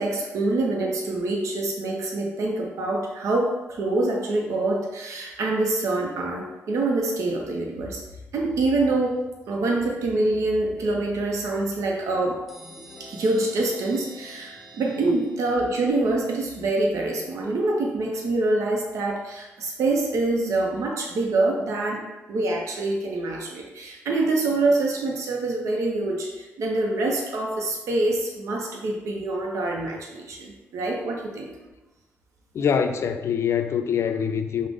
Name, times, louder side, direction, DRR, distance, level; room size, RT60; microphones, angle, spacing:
voice 1, 0.0-8.0 8.3-12.5 13.0-31.7, right 2 dB, 85° right, -1 dB, 0.5 m, -25 dB
sound 1, 12.5-16.0, equal, ahead, 0.8 m, -46 dB
voice 2, 32.5-34.7, left 7 dB, 65° left, 8 dB, 0.3 m, -24 dB
5.1 x 2.0 x 3.4 m, 1.1 s
cardioid pair, 75°, 5 cm